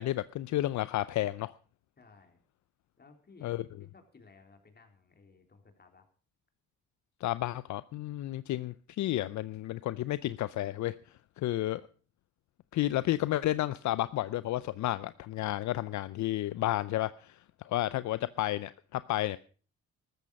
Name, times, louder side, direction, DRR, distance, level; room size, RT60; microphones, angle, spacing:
voice 1, 0.0-1.5 3.4-3.6 7.2-11.0 11.4-11.8 12.7-19.4, left 15 dB, 70° left, 16 dB, 0.6 m, -32 dB
voice 2, 2.0-2.4 3.0-3.5 3.8-6.1, left 4 dB, 35° left, 5 dB, 3.7 m, -58 dB
13.5 x 13.5 x 5.3 m, 0.40 s
cardioid pair, 90°, 30 cm